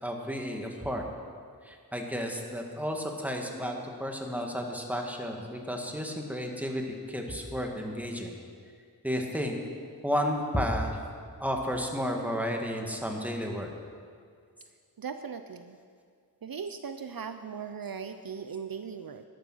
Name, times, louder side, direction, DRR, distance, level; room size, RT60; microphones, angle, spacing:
voice 1, 0.0-1.0 1.7-6.8 7.1-8.3 9.0-9.5 10.0-11.0 11.4-13.7, equal, 5° right, 1 dB, 1.8 m, -32 dB
voice 2, 15.0-15.8 16.4-19.2, right 6 dB, 65° right, 9 dB, 0.6 m, -38 dB
12.0 x 11.5 x 6.2 m, 2.1 s
wide cardioid pair, 60°, 38 cm